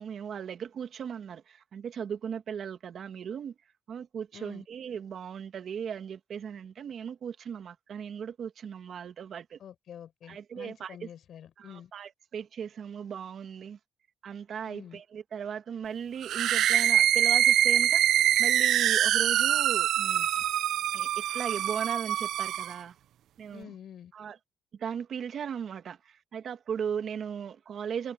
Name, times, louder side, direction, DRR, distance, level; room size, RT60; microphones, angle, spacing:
voice 1, 0.0-3.5 3.9-9.6 10.3-11.0 11.6-13.8 14.2-20.4 20.9-22.9 23.4-23.7 24.1-24.4 24.8-28.1, right 7 dB, 60° right, 1.9 m, -37 dB
voice 2, 4.3-4.7 9.6-11.9 14.7-15.0 23.5-24.1, left 9 dB, 65° left, 7.6 m, -47 dB
sound 1, 16.2-22.8, right 11 dB, 75° right, 0.5 m, -24 dB
cardioid pair, 90°, 0 cm